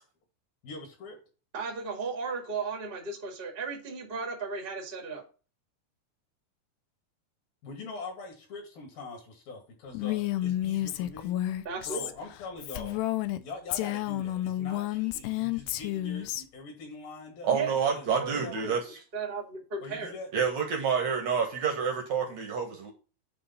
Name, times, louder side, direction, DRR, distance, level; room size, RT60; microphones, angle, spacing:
voice 1, 0.6-1.2 7.6-11.3 11.9-13.0 13.4-17.6 17.9-18.8 19.8-20.3, left 3 dB, 65° left, 3.7 m, -43 dB
voice 2, 1.5-5.2 11.6-12.1 17.5-17.7 18.1-18.7 19.1-20.1, right 4 dB, 30° right, 0.9 m, -35 dB
Female speech woman speaking, 9.9-13.4 13.7-16.4, left 14 dB, 85° left, 2.7 m, -31 dB
voice 3, 17.4-19.0 20.3-22.9, right 6 dB, 60° right, 1.9 m, -28 dB
8.7 x 3.1 x 5.7 m
omnidirectional pair, 4.7 m